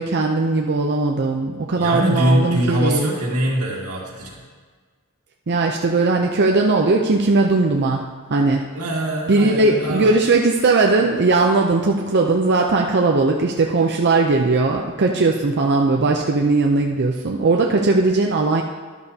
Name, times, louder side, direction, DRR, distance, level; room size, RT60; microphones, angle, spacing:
voice 1, 0.0-3.1 5.5-8.7 9.3-18.6, right 3 dB, 50° right, 1 dB, 0.6 m, -18 dB
voice 2, 1.7-4.4 8.7-10.1, equal, 85° right, -2 dB, 2.1 m, -22 dB
12.0 x 11.0 x 2.8 m, 1.5 s
head